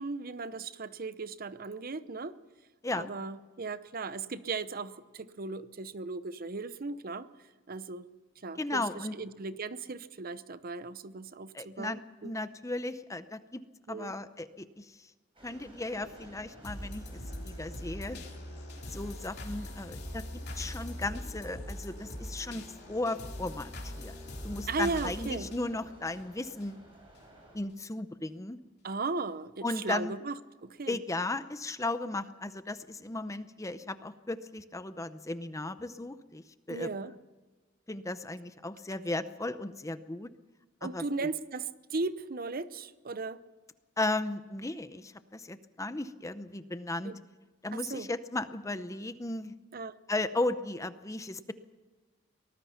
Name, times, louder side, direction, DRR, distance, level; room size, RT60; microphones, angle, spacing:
voice 1, 0.0-2.3 2.9-7.3 7.7-8.1 8.4-12.3 13.9-14.1 24.7-25.5 28.8-31.0 36.7-37.1 40.8-43.4 47.0-47.1 47.7-48.1 49.7-49.9, right 3 dB, 45° right, 14 dB, 0.8 m, -37 dB
voice 2, 8.6-9.1 11.5-13.6 13.9-14.9 15.4-18.2 18.9-20.2 20.6-23.7 24.0-24.1 24.4-26.8 27.5-28.6 29.6-30.1 30.9-36.4 36.7-36.9 37.9-40.3 40.8-41.0 44.0-47.1 47.6-49.5 50.1-51.5, left 2 dB, 15° left, 12 dB, 0.7 m, -35 dB
sound 1, 15.3-27.6, equal, 25° right, 7.0 m, -55 dB
sound 2, 16.6-26.7 27.1-27.2, left 1 dB, 55° left, 3.2 m, -42 dB
24.0 x 19.0 x 5.8 m, 1.3 s
head